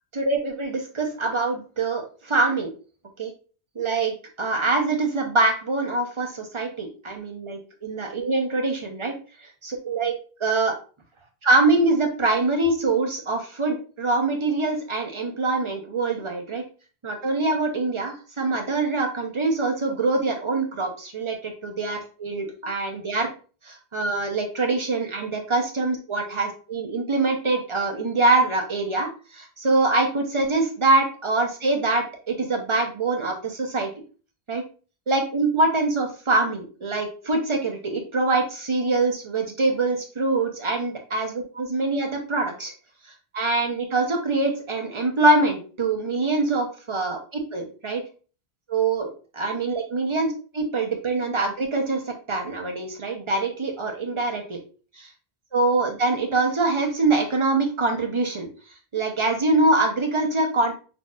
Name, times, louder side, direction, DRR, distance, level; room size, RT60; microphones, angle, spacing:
voice 1, 0.1-2.7 3.2-3.3 3.8-9.1 9.9-10.1 10.4-10.8 11.4-16.6 17.0-23.3 23.6-33.9 34.5-34.6 35.1-42.7 43.3-48.0 48.7-54.6 55.0-55.1 55.5-58.5 58.9-60.7, right 3 dB, 30° right, 3 dB, 0.8 m, -24 dB
6.4 x 2.8 x 2.4 m, 0.37 s
omnidirectional pair, 1.1 m